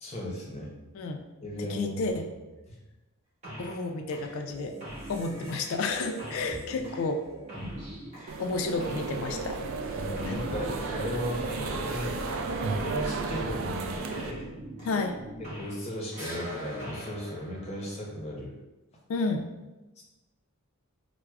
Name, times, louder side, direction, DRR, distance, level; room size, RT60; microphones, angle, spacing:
voice 1, 0.0-0.7 1.4-2.2 2.7-2.8 7.5-7.8 9.9-12.2 12.7-14.5 15.4-18.5 20.0-20.1, equal, 30° left, -3 dB, 0.7 m, -36 dB
voice 2, 1.6-2.3 3.6-4.8 5.1-7.3 8.4-9.6 10.3-10.4 14.8-15.2 19.1-19.5, left 3 dB, 65° left, 5 dB, 0.3 m, -31 dB
sound 1, 3.4-3.9 4.1-15.9 16.1-18.3, right 1 dB, 30° right, 0.9 m, -42 dB
sound 2, 8.3-14.3, right 3 dB, 60° right, 0.3 m, -33 dB
4.5 x 2.0 x 2.3 m, 1.1 s
head